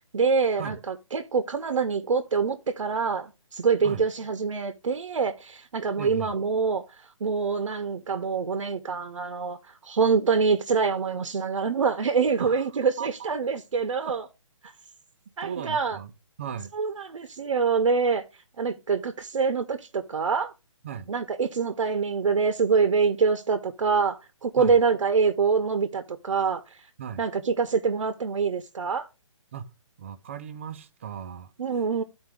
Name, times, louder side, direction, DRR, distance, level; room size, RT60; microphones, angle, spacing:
voice 1, 0.1-14.2 14.6-14.7 15.4-16.0 16.7-18.2 18.6-20.5 21.1-26.8 27.2-29.1 31.6-32.0, right 5 dB, 70° right, 0.8 m, -25 dB
voice 2, 6.0-6.3 12.4-13.3 14.0-14.1 15.4-16.1 16.4-16.7 20.8-21.1 24.6-24.8 27.0-27.2 29.5-29.7 30.0-31.5, right 8 dB, 25° right, 0.5 m, -37 dB
12.5 x 4.3 x 3.5 m
hypercardioid pair, 165°, 17 cm